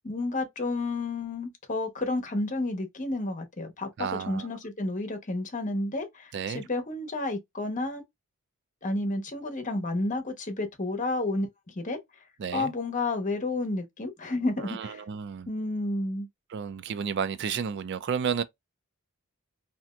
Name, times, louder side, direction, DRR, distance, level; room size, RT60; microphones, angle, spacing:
voice 1, 0.0-3.9 4.3-8.0 8.8-11.5 11.8-12.0 12.5-15.0 15.5-16.3, left 2 dB, 35° left, 0.9 m, -31 dB
voice 2, 4.0-4.5 6.3-6.6 12.4-12.7 14.6-15.5 16.5-18.4, right 7 dB, 55° right, 0.4 m, -32 dB
3.3 x 2.8 x 2.3 m
head